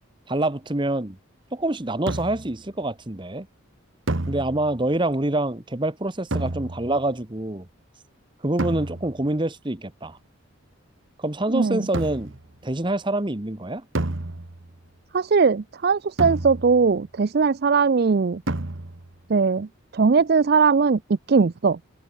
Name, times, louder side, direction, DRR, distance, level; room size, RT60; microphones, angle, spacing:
voice 1, 0.3-1.2 1.5-3.5 4.3-7.7 8.4-10.2 11.2-12.3 12.6-13.8, right 1 dB, 25° right, 1.1 m, -26 dB
sound 1, 2.1-2.6 4.1-4.9 6.3-7.1 8.6-9.3 11.9-12.5 14.0-14.8 16.2-17.0 18.5-19.2, right 2 dB, 65° right, 1.5 m, -30 dB
voice 2, 11.5-11.9 15.1-18.4 19.3-19.7 19.9-21.0 21.3-21.8, right 5 dB, 50° right, 0.4 m, -20 dB
head